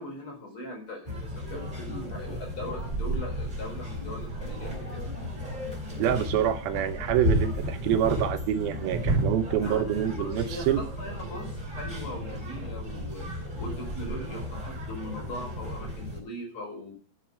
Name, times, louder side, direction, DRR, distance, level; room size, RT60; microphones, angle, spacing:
voice 1, 0.0-5.1 9.6-17.0, left 1 dB, 35° left, 1 dB, 5.0 m, -40 dB
sound 1, 1.1-16.2, equal, 10° right, 5.5 m, -33 dB
voice 2, 6.0-10.8, right 10 dB, 80° right, 10 dB, 2.8 m, -26 dB
12.5 x 7.3 x 5.6 m, 0.41 s
omnidirectional pair, 4.2 m